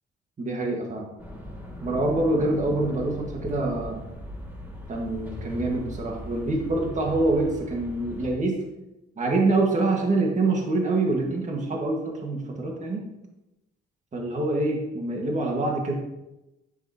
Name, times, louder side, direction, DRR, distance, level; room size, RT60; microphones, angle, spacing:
voice 1, 0.4-1.1 1.8-4.0 4.9-8.6 9.2-13.1 14.1-15.9, right 2 dB, 40° right, 0 dB, 1.9 m, -25 dB
sound 1, 1.2-8.3, equal, 10° right, 3.0 m, -39 dB
8.9 x 8.0 x 3.0 m, 0.96 s
cardioid pair, 90°, 20 cm